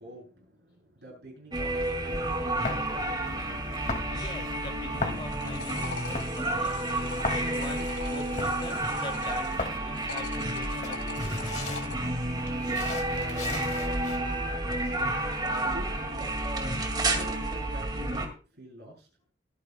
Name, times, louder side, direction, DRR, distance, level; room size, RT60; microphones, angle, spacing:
voice 1, 0.0-4.1 13.1-14.9 15.4-19.1, equal, 70° right, -1 dB, 7.6 m, -47 dB
sound 1, 1.5-18.3, right 1 dB, 25° right, 2.1 m, -30 dB
sound 2, 2.6-14.2, left 3 dB, 45° left, 2.2 m, -39 dB
voice 2, 3.9-11.8, left 1 dB, 30° left, 4 dB, 2.4 m, -43 dB
sound 3, 5.1-9.6 9.9-12.0, left 4 dB, 85° left, 2.7 m, -42 dB
23.5 x 9.2 x 2.2 m, 0.33 s
head